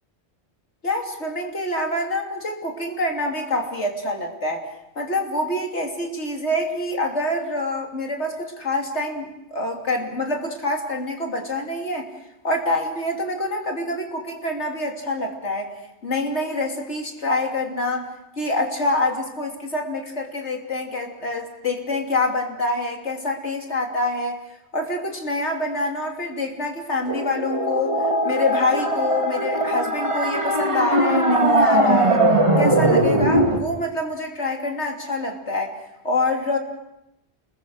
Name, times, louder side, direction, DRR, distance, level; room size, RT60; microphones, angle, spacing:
voice 1, 0.8-4.7 5.0-12.1 12.4-15.7 16.0-18.1 18.4-24.4 24.7-28.0 28.2-32.2 32.6-35.7 36.0-36.6, left 2 dB, 85° left, 2 dB, 3.3 m, -26 dB
sound 1, 27.1-33.6, right 1 dB, 25° right, 2.2 m, -20 dB
29.0 x 21.5 x 6.5 m, 0.86 s
omnidirectional pair, 1.1 m